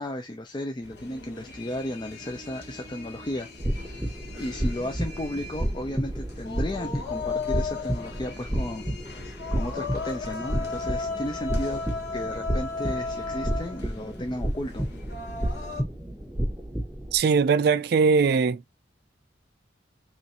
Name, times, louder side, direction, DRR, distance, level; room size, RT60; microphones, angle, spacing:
voice 1, 0.0-3.5 3.8-4.1 4.4-8.9 9.1-11.8 12.1-14.9, left 1 dB, 25° left, 0.4 m, -34 dB
sound 1, 0.8-15.8, left 4 dB, 60° left, 1.0 m, -36 dB
sound 2, 3.6-17.2, right 1 dB, 5° right, 0.8 m, -31 dB
voice 2, 17.1-18.6, right 5 dB, 55° right, 0.3 m, -20 dB
3.0 x 2.5 x 4.1 m
head